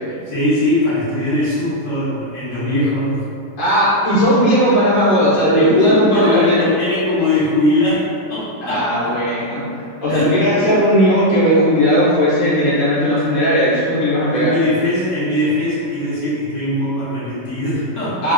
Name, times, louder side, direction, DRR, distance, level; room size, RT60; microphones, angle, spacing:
voice 1, 0.2-3.2 5.6-9.1 10.1-10.7 14.3-18.3, left 1 dB, 50° left, -11 dB, 1.0 m, -20 dB
voice 2, 3.6-6.7 8.6-9.6 10.0-14.6 18.2-18.3, equal, 70° left, -10 dB, 0.5 m, -16 dB
2.9 x 2.5 x 2.5 m, 2.4 s
omnidirectional pair, 2.1 m